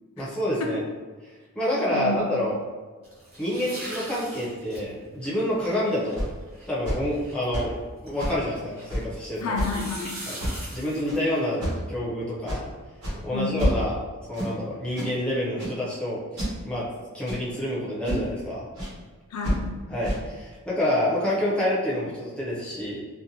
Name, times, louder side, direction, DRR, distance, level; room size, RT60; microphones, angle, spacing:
voice 1, 0.2-0.8 1.2-2.5 3.4-6.2 6.7-7.8 8.0-9.5 10.3-10.4 10.7-11.6 11.9-12.6 13.2-13.9 14.3-16.9 17.1-18.7 19.9-23.0, left 1 dB, 5° left, -6 dB, 0.5 m, -28 dB
voice 2, 1.9-2.2 9.4-10.2 13.3-13.6 19.3-19.7, left 3 dB, 90° left, 1 dB, 0.5 m, -30 dB
sound 1, 3.0-9.0 9.4-11.7, right 1 dB, 30° right, 1.1 m, -41 dB
sound 2, 6.2-6.3 6.8-7.0 7.5-7.8 8.2-8.4 8.9-9.1 9.5-9.8 10.4-10.7 11.1-11.2 11.6-11.9 12.5-12.6 13.0-13.2 13.6-14.0 14.3-14.5 14.9-15.1 15.6-15.8 16.4-16.6 17.3-17.5 18.0-18.3 18.8-18.9 19.4-19.6 20.0-20.2, equal, 75° right, 1.0 m, -28 dB
2.5 x 2.1 x 2.7 m, 1.4 s
head